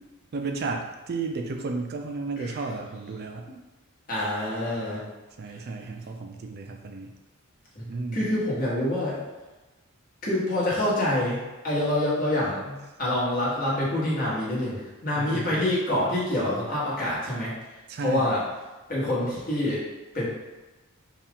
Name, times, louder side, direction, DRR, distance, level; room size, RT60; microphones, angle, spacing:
voice 1, 0.3-3.5 5.4-7.1 7.9-8.3 15.1-15.7 17.9-18.3, right 3 dB, 50° right, 3 dB, 0.4 m, -33 dB
voice 2, 4.1-5.0 7.7-9.2 10.2-17.5 18.0-18.4 18.9-19.8 20.1-20.3, left 1 dB, 45° left, -7 dB, 1.4 m, -26 dB
4.3 x 2.4 x 3.6 m, 1.1 s
head